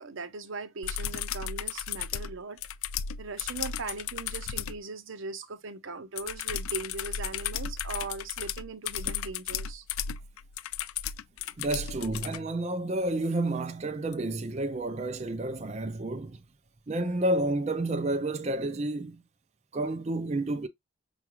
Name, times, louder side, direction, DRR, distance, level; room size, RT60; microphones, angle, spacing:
voice 1, 0.0-2.6 3.2-9.8, right 3 dB, 70° right, 0.7 m, -39 dB
sound 1, 0.8-4.8 6.2-12.4 14.1-14.2, left 8 dB, 85° left, 0.3 m, -35 dB
voice 2, 11.6-16.4 16.9-19.2 19.7-20.7, right 2 dB, 30° right, 0.4 m, -30 dB
5.8 x 2.4 x 2.9 m
head